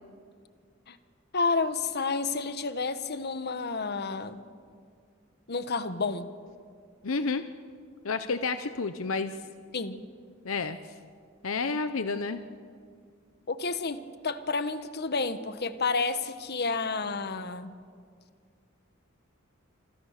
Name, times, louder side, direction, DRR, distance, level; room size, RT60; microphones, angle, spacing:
voice 1, 1.3-4.4 5.5-6.3 9.7-10.0 13.5-17.7, left 4 dB, 50° left, 11 dB, 1.3 m, -30 dB
voice 2, 7.0-7.4 8.0-9.4 10.4-10.8 11.4-12.4, left 4 dB, 75° left, 10 dB, 0.9 m, -30 dB
27.0 x 26.5 x 6.7 m, 2.1 s
head